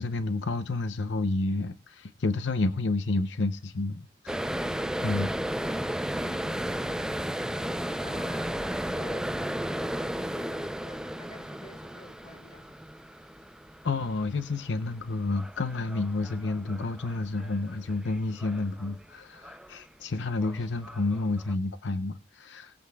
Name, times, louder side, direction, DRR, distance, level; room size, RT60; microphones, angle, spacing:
voice 1, 0.0-4.7 5.0-5.3 13.8-22.8, left 3 dB, 80° left, 0.7 m, -30 dB
sound 1, 4.3-19.1 19.4-19.8 20.2-21.5, equal, 5° right, 0.4 m, -34 dB
voice 2, 8.0-9.5 9.8-12.8, left 2 dB, 35° left, 3.5 m, -51 dB
20.5 x 7.7 x 2.3 m
head